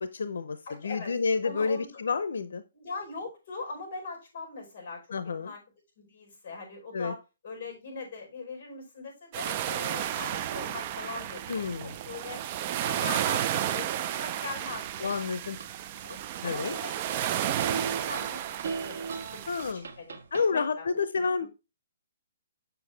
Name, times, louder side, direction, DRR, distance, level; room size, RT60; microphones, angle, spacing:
voice 1, 0.0-0.6 0.8-2.6 5.1-5.5 6.9-7.1 11.5-12.0 15.0-15.6 16.4-16.7 19.5-19.9 20.3-21.5, left 5 dB, 85° left, 12 dB, 0.6 m, -29 dB
voice 2, 0.7-1.1 1.4-2.0 2.7-5.6 6.0-7.2 7.4-12.4 12.8-15.3 16.0-16.2 16.4-21.0 21.4-21.5, left 3 dB, 35° left, 1 dB, 4.7 m, -41 dB
sound 1, 9.3-19.7, right 11 dB, 25° right, 0.4 m, -32 dB
sound 2, 15.1-15.7 16.1-17.2 17.6-20.5, right 5 dB, 75° right, 1.5 m, -37 dB
7.4 x 6.9 x 3.3 m, 0.28 s
hypercardioid pair, 170°, 0 cm